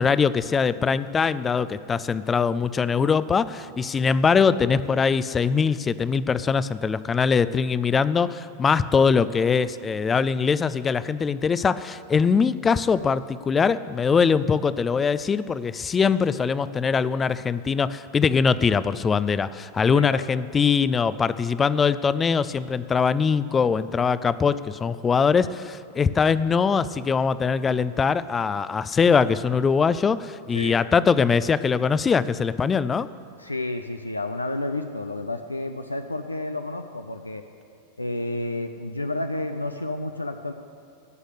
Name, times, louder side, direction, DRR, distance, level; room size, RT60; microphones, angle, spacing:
voice 1, 0.0-33.1, left 5 dB, 20° left, 16 dB, 0.4 m, -22 dB
voice 2, 19.9-20.3 30.5-30.8 33.4-37.4 38.0-40.5, left 2 dB, 85° left, 7 dB, 0.5 m, -30 dB
16.5 x 6.5 x 8.3 m, 2.4 s
figure-of-eight pair, 90°, 0 cm